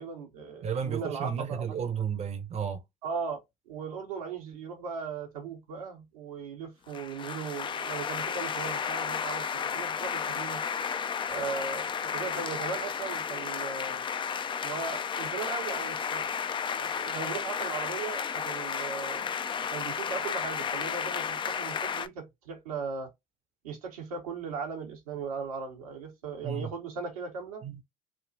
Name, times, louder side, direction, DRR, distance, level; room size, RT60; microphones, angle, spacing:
voice 1, 0.0-1.6 3.0-10.6 11.3-14.0 14.6-16.2 16.8-19.4 19.7-23.1 23.6-27.6, right 5 dB, 80° right, 1.0 m, -38 dB
voice 2, 0.6-2.8 26.4-26.7 27.6-27.8, right 7 dB, 35° right, 0.7 m, -32 dB
sound 1, 6.9-22.1, left 7 dB, 25° left, 0.4 m, -33 dB
3.4 x 2.3 x 2.6 m
hypercardioid pair, 60°, 18 cm